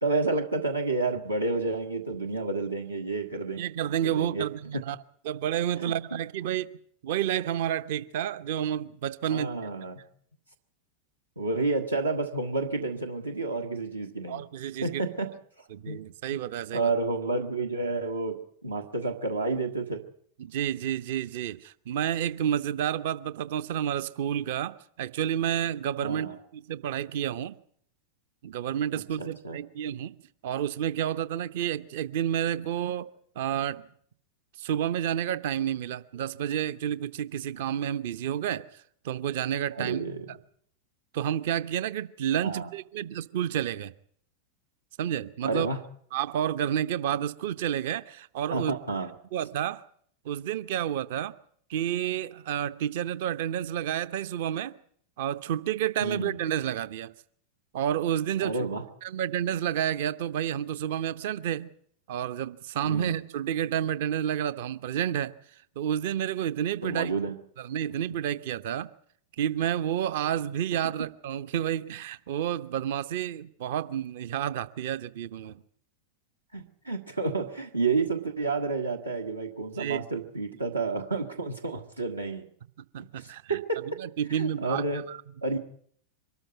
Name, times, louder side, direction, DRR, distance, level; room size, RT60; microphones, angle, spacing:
voice 1, 0.0-3.6 4.0-4.5 4.7-4.8 5.8-6.2 9.3-10.0 11.4-14.4 14.8-15.3 15.8-16.0 16.7-20.0 26.0-26.4 29.2-29.6 39.7-40.3 42.4-42.7 45.4-45.8 48.5-49.1 56.0-56.4 58.4-58.8 62.8-63.2 66.8-67.3 71.0-71.1 76.5-82.4 83.0-83.9 84.3-85.0 85.4-85.6, right 3 dB, 85° right, 1.6 m, -30 dB
voice 2, 3.6-5.0 5.2-6.7 7.0-9.5 14.3-15.0 15.7-16.9 20.4-26.3 26.5-27.6 28.4-30.2 30.4-33.9 34.6-38.7 39.0-40.0 41.1-43.9 45.0-45.7 46.1-48.7 49.3-49.9 50.2-51.4 51.7-54.7 55.2-57.1 57.7-58.6 59.0-61.7 62.1-65.3 65.8-67.1 67.6-68.9 69.4-75.6 79.8-80.0 82.9-83.6 84.0-85.2, right 10 dB, 55° right, 0.8 m, -30 dB
23.5 x 13.5 x 9.2 m
figure-of-eight pair, 90°, 0 cm